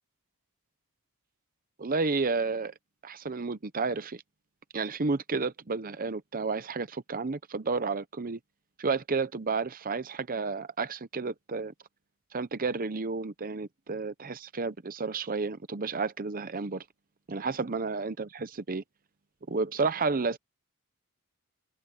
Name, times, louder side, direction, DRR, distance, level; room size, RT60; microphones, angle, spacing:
voice 1, 1.8-2.7 3.0-4.2 4.7-8.4 8.8-11.7 12.3-16.8 17.3-18.8 19.5-20.4, right 4 dB, 40° right, 0.7 m, -31 dB
head